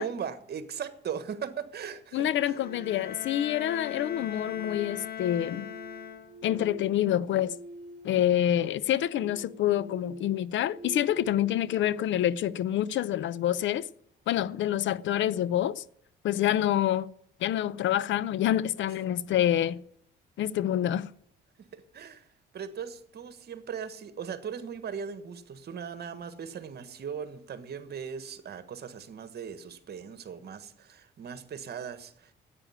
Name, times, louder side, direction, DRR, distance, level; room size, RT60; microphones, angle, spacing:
voice 1, 0.0-2.6 21.7-22.3 22.5-32.3, right 7 dB, 55° right, 1.5 m, -39 dB
voice 2, 2.1-5.7 6.4-7.6 8.0-13.9 14.3-15.8 16.2-17.1 17.4-19.8 20.4-21.1, left 11 dB, 70° left, 0.6 m, -27 dB
sound 1, 2.2-13.3, equal, 40° right, 2.0 m, -47 dB
Bowed string instrument, 2.5-6.6, left 10 dB, 50° left, 0.8 m, -40 dB
10.0 x 8.8 x 9.8 m
cardioid pair, 90°, 20 cm